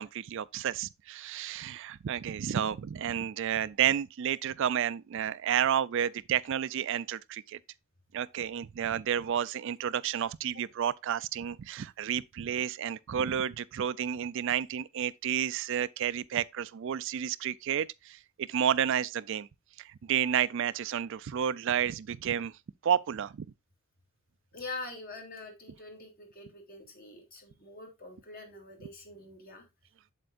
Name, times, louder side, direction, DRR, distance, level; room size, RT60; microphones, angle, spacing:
voice 1, 0.0-7.6 8.1-19.5 20.1-22.5 22.8-23.5, right 9 dB, 60° right, 0.4 m, -31 dB
voice 2, 24.5-29.6, left 3 dB, 45° left, 2.6 m, -44 dB
8.1 x 7.7 x 2.5 m
head